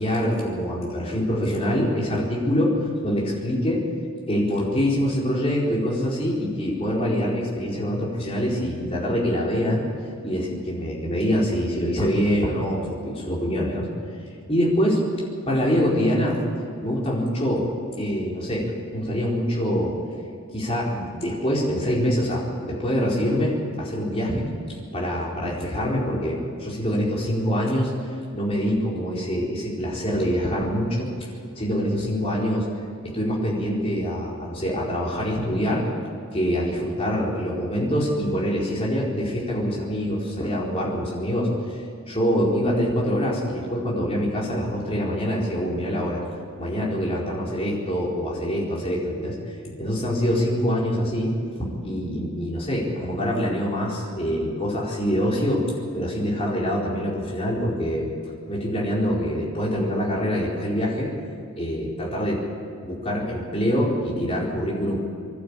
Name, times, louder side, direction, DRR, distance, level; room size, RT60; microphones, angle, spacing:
voice 1, 0.0-2.7 3.0-3.8 4.3-9.9 10.2-13.9 14.5-15.0 15.5-16.4 16.8-17.7 18.0-20.0 20.5-24.5 24.9-27.9 28.3-31.1 31.6-32.7 33.0-35.9 36.3-41.5 42.1-46.2 46.6-49.4 49.6-51.3 51.6-55.6 55.9-58.1 58.5-61.1 61.6-62.4 62.8-65.0, equal, 25° left, -4 dB, 4.3 m, -25 dB
25.5 x 11.5 x 8.8 m, 2.3 s
head